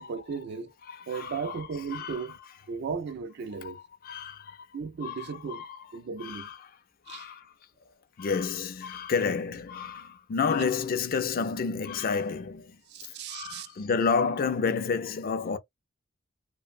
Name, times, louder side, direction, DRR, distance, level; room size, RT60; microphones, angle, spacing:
voice 1, 0.0-0.7 1.1-2.4 2.7-3.8 4.7-5.6 5.9-6.5 7.1-7.3 10.5-10.7 12.9-13.7, right 5 dB, 55° right, 0.4 m, -36 dB
voice 2, 0.8-2.3 3.6-4.7 5.0-5.9 6.2-6.7 7.1-7.5 8.2-12.8 13.3-15.6, left 5 dB, 45° left, 0.4 m, -30 dB
2.6 x 2.1 x 2.5 m
head